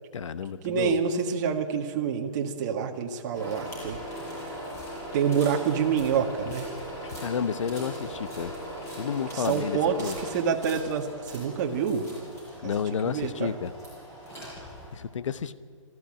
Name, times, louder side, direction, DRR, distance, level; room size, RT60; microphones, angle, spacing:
voice 1, 0.1-1.0 7.0-8.5 9.0-10.1 12.6-13.7 14.9-15.5, left 7 dB, 65° left, 14 dB, 1.0 m, -31 dB
voice 2, 0.6-4.0 5.1-6.7 9.3-12.1 13.0-13.5, right 7 dB, 35° right, 3 dB, 1.8 m, -27 dB
sound 1, 3.3-15.0, equal, 15° left, 7.5 m, -39 dB
20.5 x 14.5 x 8.9 m, 2.1 s
hypercardioid pair, 155°, 17 cm